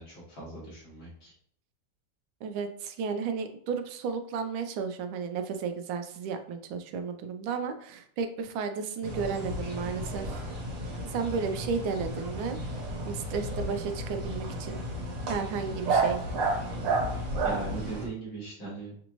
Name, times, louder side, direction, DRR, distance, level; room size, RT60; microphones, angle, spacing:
voice 1, 0.0-1.3 17.4-18.9, right 3 dB, 85° left, -7 dB, 2.9 m, -39 dB
voice 2, 2.4-10.4 11.1-12.6 13.0-14.8 15.3-16.2, right 5 dB, 90° right, 7 dB, 1.4 m, -33 dB
sound 1, 9.0-18.1, right 2 dB, 70° right, 1.9 m, -32 dB
5.9 x 2.6 x 3.0 m, 0.63 s
omnidirectional pair, 2.1 m